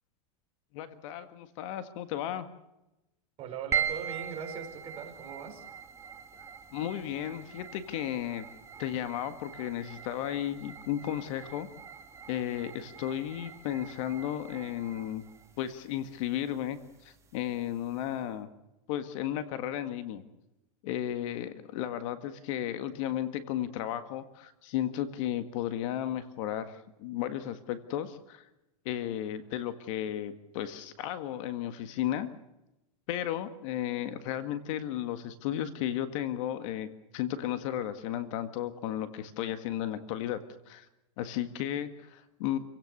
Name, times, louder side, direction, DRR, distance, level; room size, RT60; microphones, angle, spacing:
voice 1, 0.7-2.5 6.7-8.5 8.8-11.7 12.3-15.2 15.6-18.5 18.9-20.2 20.8-28.5 28.9-32.3 33.1-36.9 37.1-40.9 41.2-42.6, left 11 dB, 55° left, 10 dB, 1.8 m, -34 dB
voice 2, 3.4-5.6, right 6 dB, 30° right, 3 dB, 4.8 m, -40 dB
sound 1, 3.7-18.2, right 8 dB, 15° right, 1.6 m, -41 dB
29.0 x 17.0 x 6.7 m, 0.93 s
supercardioid pair, 155°, 20 cm